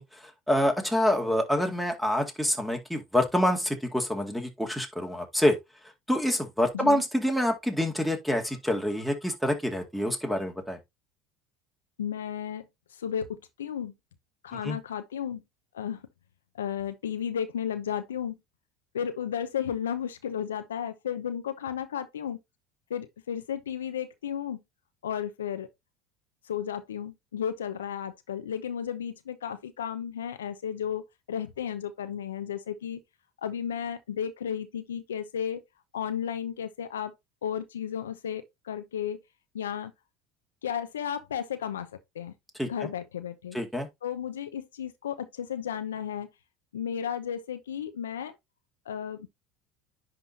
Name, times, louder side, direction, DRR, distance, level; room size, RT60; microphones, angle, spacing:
voice 1, 0.0-5.6 6.1-10.8 14.5-14.8 42.6-42.9 43.5-43.9, left 1 dB, ahead, 2.2 m, -27 dB
voice 2, 12.0-12.7 12.9-13.9 14.4-15.4 15.7-16.0 16.5-18.4 18.9-22.4 22.9-24.6 25.0-25.7 26.4-33.0 33.4-35.6 35.9-37.1 37.4-39.2 39.5-39.9 40.6-41.9 42.1-42.3 42.7-43.6 44.0-46.3 46.7-48.3 48.9-49.3, left 8 dB, 85° left, 0.7 m, -33 dB
10.5 x 3.7 x 2.8 m
hypercardioid pair, 80°, 0 cm